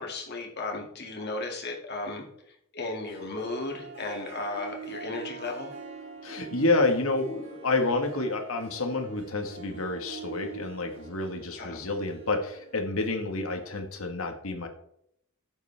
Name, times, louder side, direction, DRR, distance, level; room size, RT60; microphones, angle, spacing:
voice 1, 0.0-2.3 2.7-5.7 11.6-11.8, left 2 dB, 50° left, 1 dB, 2.3 m, -35 dB
Harp, 2.9-14.1, right 4 dB, 60° right, 2.8 m, -44 dB
voice 2, 6.2-14.7, left 3 dB, 70° left, 6 dB, 1.6 m, -29 dB
11.5 x 8.5 x 3.4 m, 0.73 s
head